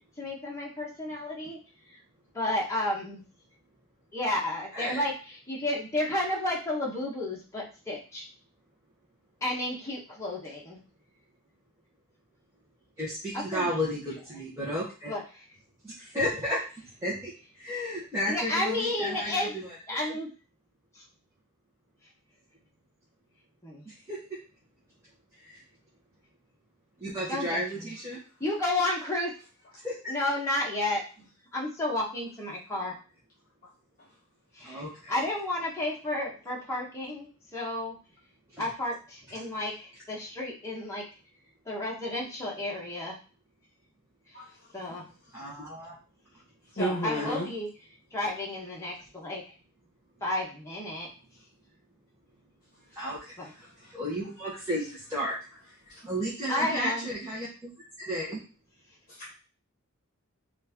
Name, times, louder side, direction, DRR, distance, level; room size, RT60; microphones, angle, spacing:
voice 1, 0.2-1.6 1.9-2.0 2.3-3.2 4.1-8.3 9.4-10.8 13.3-13.8 15.1-15.4 18.3-19.5 19.9-20.3 20.9-21.0 23.6-23.8 27.3-27.9 28.4-29.3 30.1-32.9 34.5-37.9 38.6-41.0 41.7-43.1 44.7-45.1 46.8-47.7 48.1-49.4 50.2-51.1 53.4-53.5 56.5-57.1, left 1 dB, 15° left, -4 dB, 1.0 m, -32 dB
voice 2, 4.7-5.0 13.0-15.1 15.8-16.6 17.0-20.0 23.8-24.2 25.4-25.6 27.0-28.2 29.8-29.9 32.7-32.8 34.6-35.1 38.5-38.6 45.3-45.9 47.1-47.4 52.9-55.3 55.8-57.7 58.0-58.4, equal, 15° right, -8 dB, 1.0 m, -33 dB
voice 3, 46.8-47.5 53.8-53.9 56.0-56.1 59.1-59.3, equal, 40° left, -5 dB, 1.1 m, -32 dB
4.1 x 2.6 x 3.5 m, 0.35 s
head